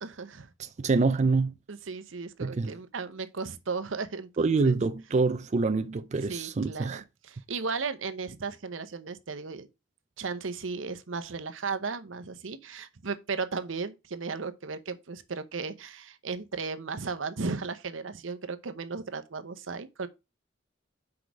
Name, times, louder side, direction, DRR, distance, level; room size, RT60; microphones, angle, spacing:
voice 1, 0.0-0.5 1.7-4.7 6.2-9.7 10.2-20.1, right 4 dB, 85° right, 0.8 m, -35 dB
voice 2, 0.6-1.5 2.4-2.7 4.4-7.0, right 3 dB, 35° right, 0.4 m, -26 dB
6.2 x 4.8 x 4.8 m
head